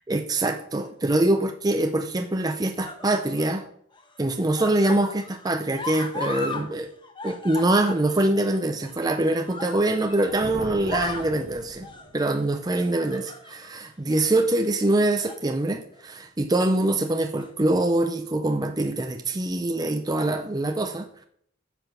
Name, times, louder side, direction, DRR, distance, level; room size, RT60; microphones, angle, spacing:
voice 1, 0.1-3.6 4.2-6.9 7.2-11.9 12.1-21.3, right 2 dB, 20° right, 6 dB, 0.5 m, -24 dB
sound 1, 0.8-1.4 2.3-3.6 3.9-6.7 6.9-10.4 10.7-11.4 11.8-12.1 12.7-13.7 14.1-14.3 15.0-15.5 15.8-16.0 17.1-17.8 18.7-18.8, left 3 dB, 25° left, 1.1 m, -38 dB
sound 2, 10.0-12.5, right 2 dB, 45° right, 0.8 m, -40 dB
10.0 x 6.0 x 6.9 m, 0.68 s
head